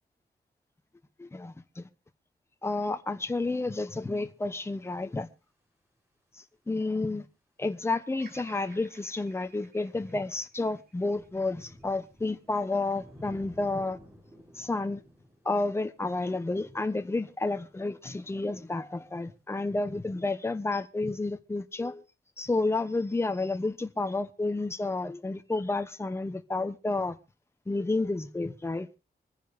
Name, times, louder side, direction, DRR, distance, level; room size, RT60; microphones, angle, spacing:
voice 1, 1.2-1.9 2.6-5.3 6.7-7.2 7.6-14.0 14.5-15.0 15.4-22.0 22.4-27.2 27.7-28.9, left 2 dB, 15° left, 1.1 m, -30 dB
sound 1, 3.4-3.5 9.3-20.3, equal, 15° right, 5.2 m, -56 dB
Bird vocalization bird call bird song, 8.2-12.4 12.9-13.7, right 4 dB, 70° right, 3.7 m, -56 dB
25.5 x 10.0 x 2.5 m
wide cardioid pair, 135°, 17 cm